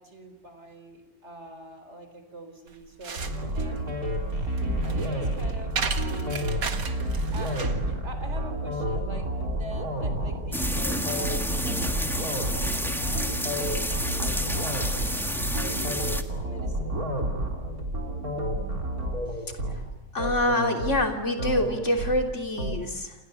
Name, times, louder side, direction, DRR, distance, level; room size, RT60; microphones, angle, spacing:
voice 1, 0.0-6.7 7.3-9.3 9.5-11.6 12.3-14.2 14.5-14.8 15.3-17.0, right 1 dB, 40° right, 7 dB, 4.4 m, -44 dB
sound 1, 2.7-7.8, right 6 dB, 75° right, 2.3 m, -35 dB
sound 2, 3.2-22.8, right 1 dB, 55° right, 4.4 m, -30 dB
sound 3, 10.5-16.2, equal, ahead, 1.6 m, -30 dB
voice 2, 20.1-23.2, left 1 dB, 40° left, 3 dB, 3.6 m, -26 dB
28.5 x 28.5 x 6.9 m, 1.0 s
omnidirectional pair, 1.9 m